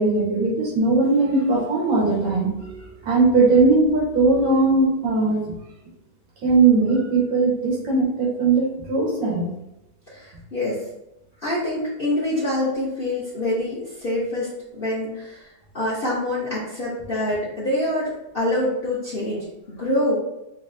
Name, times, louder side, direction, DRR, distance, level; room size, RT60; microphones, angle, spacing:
voice 1, 0.0-5.6 6.4-9.5, right 3 dB, 85° right, -4 dB, 1.9 m, -19 dB
voice 2, 10.1-10.8 11.4-14.5 14.8-20.1, left 1 dB, 55° left, -7 dB, 0.6 m, -26 dB
5.9 x 2.0 x 2.5 m, 0.88 s
omnidirectional pair, 2.1 m